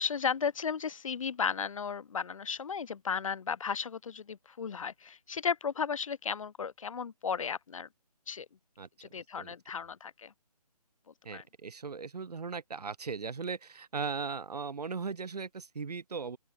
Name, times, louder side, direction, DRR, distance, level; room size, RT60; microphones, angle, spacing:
voice 1, 0.0-7.9 8.3-8.5 9.0-10.3 11.3-11.4, left 6 dB, 55° left, 0.5 m, -34 dB
voice 2, 8.8-9.1 9.4-9.5 11.2-16.4, right 5 dB, 75° right, 0.8 m, -38 dB
open air
figure-of-eight pair, 155°, 20 cm